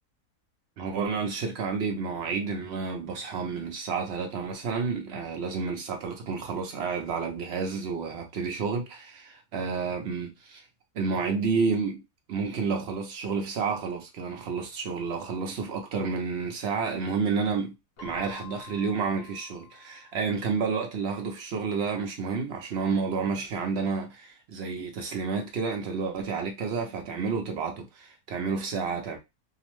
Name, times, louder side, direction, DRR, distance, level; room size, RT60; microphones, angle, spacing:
voice 1, 0.8-10.6 10.9-12.0 12.3-17.7 18.0-29.2, right 5 dB, 65° right, 0.6 m, -30 dB
Keyboard (musical), 18.0-20.7, left 6 dB, 50° left, 0.5 m, -48 dB
2.8 x 2.0 x 3.0 m
omnidirectional pair, 1.7 m